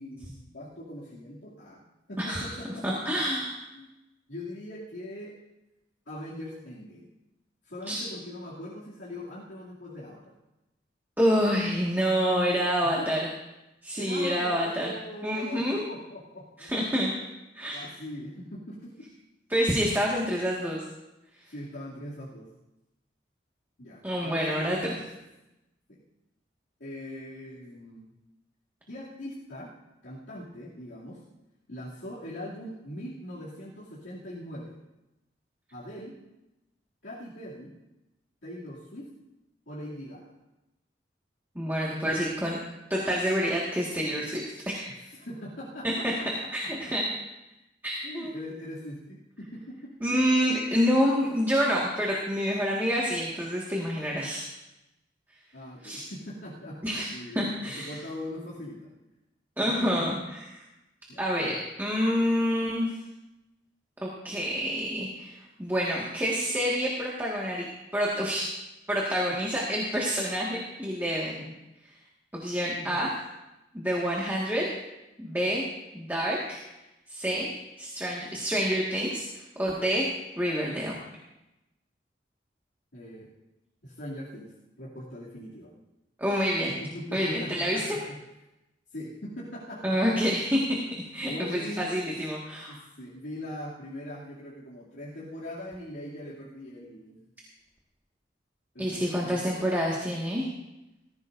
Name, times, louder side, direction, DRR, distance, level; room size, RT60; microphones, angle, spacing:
voice 1, 0.0-1.8 2.1-3.2 3.7-3.9 4.3-5.3 6.1-7.1 7.6-10.3 12.8-13.2 14.0-16.8 17.7-19.1 21.5-22.5 23.8-25.1 25.9-26.0 26.8-28.1 28.9-29.7 30.0-31.2 31.7-34.7 35.7-36.1 37.0-37.7 38.4-39.1 39.7-40.3 45.0-46.9 48.0-49.9 55.5-56.8 57.1-58.9 59.8-60.0 61.1-61.6 69.2-69.4 72.7-73.1 82.9-83.3 83.8-85.7 86.8-88.2 88.9-90.1 91.3-91.9 92.7-97.2 98.7-99.7, left 1 dB, 80° left, -8 dB, 2.7 m, -41 dB
voice 2, 2.8-3.6 7.9-8.0 11.2-13.2 13.8-14.9 15.2-15.8 16.6-17.1 17.5-17.8 19.5-20.8 24.0-25.0 41.6-42.6 42.9-44.9 45.8-46.1 46.5-47.0 47.8-48.3 50.0-54.5 55.8-56.0 56.8-57.1 57.3-57.9 59.6-60.4 61.2-62.9 64.0-67.7 67.9-68.5 68.9-71.5 72.3-73.1 73.7-74.6 75.2-75.6 75.9-76.6 77.1-80.1 80.4-81.0 86.2-86.8 87.1-88.0 89.8-92.8 98.8-100.5, equal, 10° right, -4 dB, 1.8 m, -27 dB
19.0 x 15.5 x 2.7 m, 0.96 s
head